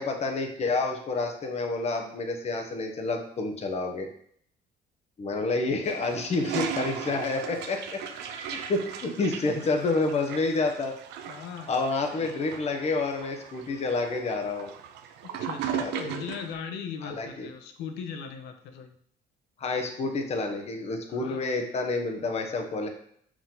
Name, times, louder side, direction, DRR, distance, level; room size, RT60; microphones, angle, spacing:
voice 1, 0.0-4.1 5.2-8.0 8.5-10.9 11.7-14.7 15.7-16.2 17.0-17.5 19.6-22.9, left 3 dB, 40° left, 4 dB, 1.1 m, -29 dB
Toilet flush, 5.8-16.5, right 8 dB, 90° right, 0.7 m, -37 dB
voice 2, 11.2-11.8 12.1-12.4 15.2-18.9 21.1-21.5, left 6 dB, 90° left, 6 dB, 1.0 m, -39 dB
5.8 x 4.9 x 3.9 m, 0.63 s
cardioid pair, 110°, 17 cm